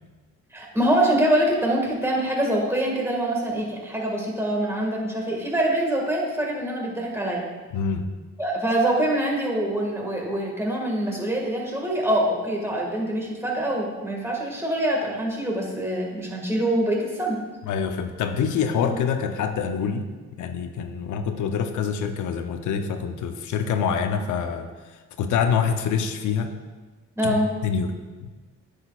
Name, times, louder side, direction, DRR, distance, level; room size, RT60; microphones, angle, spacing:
voice 1, 0.5-7.4 8.4-17.4 18.8-18.9 27.2-27.5, right 1 dB, 10° right, -1 dB, 1.7 m, -24 dB
voice 2, 7.7-8.1 17.6-20.1 20.4-26.5 27.2-27.4 27.6-28.3, left 6 dB, 75° left, 7 dB, 0.7 m, -26 dB
9.7 x 6.4 x 2.4 m, 1.3 s
cardioid pair, 90°, 30 cm